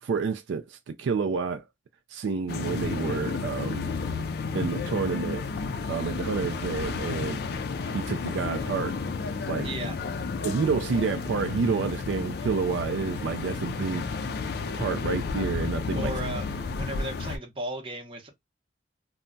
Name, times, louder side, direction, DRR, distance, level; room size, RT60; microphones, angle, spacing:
voice 1, 0.0-1.6 2.1-3.9 4.5-5.4 5.9-7.4 7.9-9.0 9.5-9.7 10.4-14.1 14.7-16.1, right 5 dB, 70° right, 0.3 m, -29 dB
sound 1, 2.5-17.4, left 4 dB, 55° left, 0.3 m, -32 dB
voice 2, 9.6-10.0 15.9-16.5 16.7-18.3, right 1 dB, 25° right, 0.8 m, -35 dB
2.2 x 2.1 x 3.7 m
head